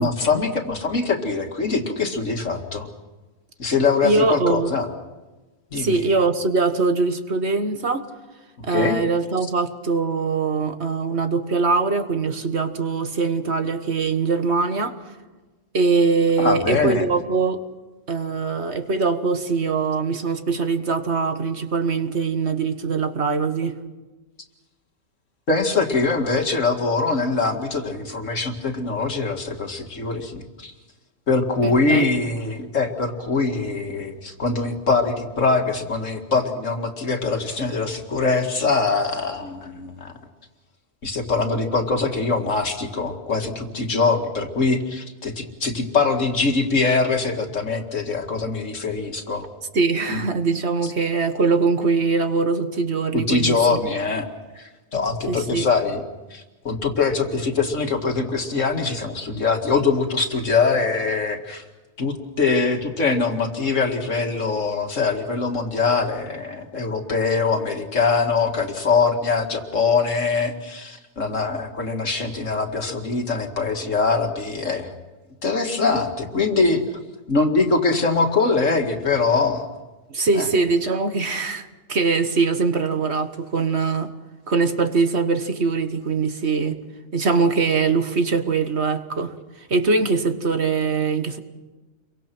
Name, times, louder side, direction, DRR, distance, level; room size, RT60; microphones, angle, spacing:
voice 1, 0.0-2.9 3.6-4.9 5.7-6.0 8.7-9.0 16.4-17.1 25.5-30.7 31.3-40.1 41.0-49.5 50.1-50.2 50.8-50.9 53.1-54.3 54.5-56.0 56.3-61.6 62.0-74.9 75.4-76.8 77.3-79.7 80.3-80.5, left 4 dB, 65° left, 4 dB, 2.5 m, -23 dB
voice 2, 4.0-4.7 5.7-8.1 8.6-15.0 15.7-17.6 18.1-23.8 31.6-32.1 49.7-53.8 55.3-55.7 80.1-84.1 84.5-86.8 87.1-91.4, right 4 dB, 55° right, 8 dB, 1.7 m, -22 dB
29.5 x 24.0 x 6.1 m, 1.2 s
omnidirectional pair, 1.4 m